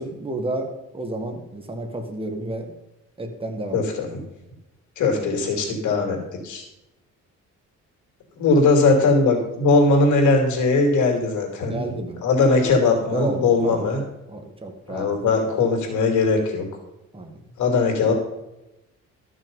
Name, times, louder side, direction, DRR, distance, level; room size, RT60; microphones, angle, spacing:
voice 1, 0.0-2.7 3.2-3.8 11.7-12.2 13.1-13.8 14.3-15.1 17.1-17.3, right 1 dB, 20° right, 4 dB, 1.9 m, -31 dB
voice 2, 3.7-4.1 5.0-6.7 8.4-11.8 12.2-14.0 14.9-16.7 17.6-18.1, left 3 dB, 75° left, 3 dB, 3.1 m, -20 dB
13.0 x 6.3 x 5.5 m, 0.94 s
cardioid pair, 90°, 30 cm